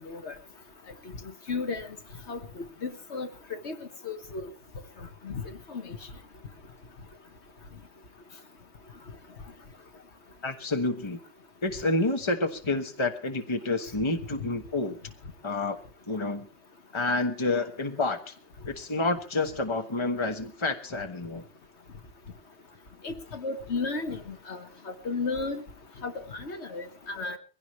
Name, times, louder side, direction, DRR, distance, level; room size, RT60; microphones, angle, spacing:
voice 1, 1.5-1.9 2.3-2.4 2.8-3.8 4.0-4.4 5.2-5.4 5.7-6.0 23.0-25.6 26.0-27.4, left 4 dB, 70° left, 7 dB, 1.7 m, -34 dB
voice 2, 10.4-11.2 11.6-15.0 15.4-15.8 16.1-16.5 16.9-18.3 18.7-21.4, left 2 dB, 25° left, 6 dB, 1.3 m, -29 dB
22.0 x 16.5 x 3.2 m, 0.35 s
omnidirectional pair, 1.2 m